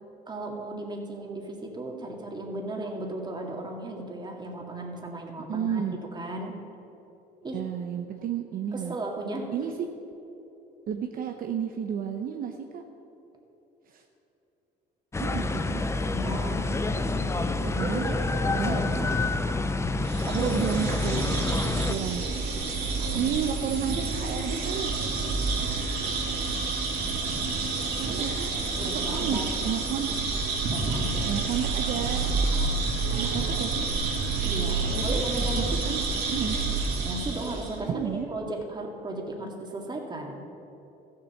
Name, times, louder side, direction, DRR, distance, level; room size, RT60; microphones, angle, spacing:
voice 1, 0.3-6.6 7.4-7.6 8.7-9.5 16.1-16.7 17.8-19.2 20.3-20.5 23.0-23.2 28.1-28.2 28.8-29.5 30.7-31.3 32.5-32.8 34.4-35.7 37.0-40.4, right 2 dB, 25° right, 1 dB, 2.1 m, -35 dB
voice 2, 5.5-5.9 7.5-9.0 9.5-9.7 10.9-12.8 13.9-14.0 15.2-15.8 17.6-18.1 18.6-18.8 20.3-22.2 23.1-24.9 28.0-28.5 29.1-30.1 31.3-32.3 33.2-33.9 34.8-35.2 35.5-36.6 37.9-38.3, right 8 dB, 60° right, 4 dB, 0.8 m, -32 dB
sound 1, 15.1-22.0, left 3 dB, 15° left, 0.6 m, -28 dB
sound 2, 20.0-37.8, right 3 dB, 75° right, 2.8 m, -29 dB
14.5 x 7.5 x 7.0 m, 3.0 s
cardioid pair, 110°, 17 cm